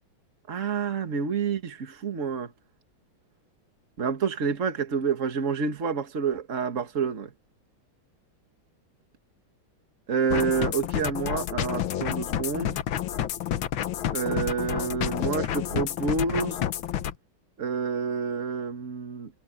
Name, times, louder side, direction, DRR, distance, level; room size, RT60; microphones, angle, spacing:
voice 1, 0.5-2.5 4.0-7.3 10.1-12.8 14.1-16.6 17.6-19.3, right 5 dB, 40° right, 2.0 m, -28 dB
sound 1, 10.3-17.1, left 10 dB, 80° left, 1.8 m, -29 dB
omnidirectional pair, 2.2 m